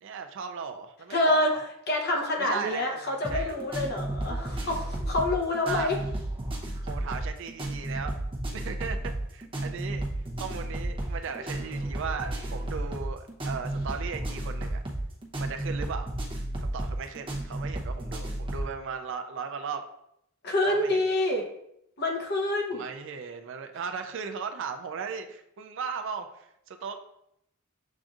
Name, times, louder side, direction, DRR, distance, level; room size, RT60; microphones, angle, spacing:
voice 1, 0.0-1.6 2.4-3.5 5.7-6.0 6.8-8.2 8.5-10.0 10.4-14.8 15.4-16.1 16.6-19.9 20.7-21.0 22.7-27.0, right 6 dB, 65° right, 6 dB, 0.4 m, -37 dB
voice 2, 1.1-1.5 1.9-6.0 20.4-21.5 22.0-22.9, left 1 dB, 55° left, 1 dB, 0.9 m, -27 dB
sound 1, 3.2-18.7, right 1 dB, 25° right, 0.8 m, -33 dB
7.2 x 2.6 x 2.4 m, 0.79 s
head